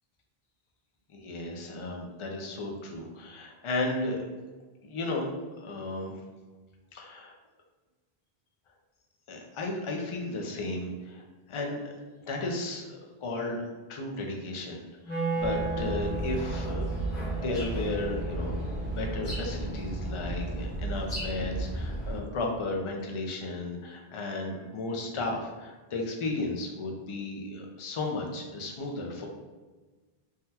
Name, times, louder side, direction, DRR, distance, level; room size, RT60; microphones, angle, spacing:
voice 1, 1.1-4.3 4.8-5.3 5.6-6.1 6.9-7.3 9.3-11.9 12.2-13.6 13.9-16.9 17.4-18.6 18.8-29.3, left 2 dB, 50° left, 1 dB, 0.4 m, -34 dB
Wind instrument woodwind instrument, 15.0-21.1, right 4 dB, 10° left, 0.8 m, -37 dB
sound 1, 15.4-22.2, right 1 dB, 90° left, 1.3 m, -34 dB
3.6 x 2.2 x 2.8 m, 1.3 s
omnidirectional pair, 1.0 m